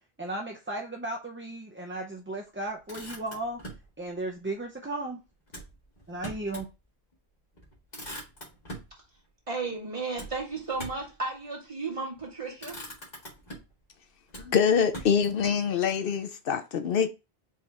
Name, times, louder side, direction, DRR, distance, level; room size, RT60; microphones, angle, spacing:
voice 1, 0.2-3.6 4.0-5.2 6.1-6.7, right 2 dB, 15° right, 0.5 m, -35 dB
Motor vehicle (road), 2.6-3.9 5.5-6.7 7.1-7.2 7.5-8.9 10.2-11.2 12.0-12.3 12.6-13.8 14.3-15.5, right 1 dB, 45° left, 1.9 m, -43 dB
voice 2, 9.5-12.8, right 3 dB, 30° right, 2.0 m, -34 dB
voice 3, 14.4-17.1, left 7 dB, 65° left, 0.7 m, -25 dB
4.7 x 3.2 x 3.4 m
omnidirectional pair, 1.0 m